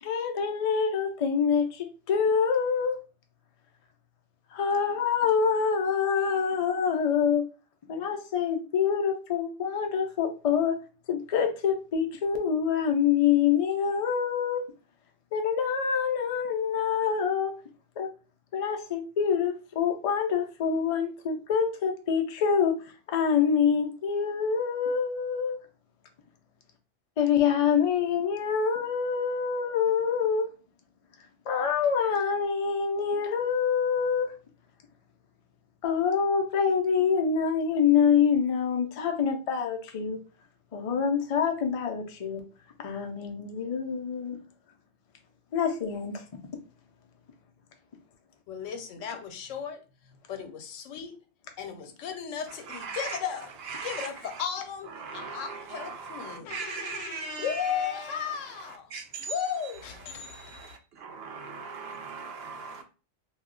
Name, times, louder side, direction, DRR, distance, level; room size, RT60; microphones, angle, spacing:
voice 1, 0.0-3.0 4.5-7.4 7.9-10.8 11.1-14.6 15.3-17.5 18.0-18.1 18.5-22.7 23.1-25.6 27.2-30.5 31.5-34.3 35.8-40.2 40.7-42.4 42.8-44.4 45.5-46.2, left 7 dB, 65° left, 0.3 m, -26 dB
voice 2, 48.5-51.2 51.6-53.5 53.8-58.9 59.3-60.8, left 7 dB, 85° left, 1.0 m, -35 dB
voice 3, 52.5-53.2 53.6-54.4 54.9-57.7 58.2-59.4 59.6-62.8, right 5 dB, 65° right, 0.7 m, -40 dB
2.3 x 2.1 x 3.6 m
omnidirectional pair, 1.3 m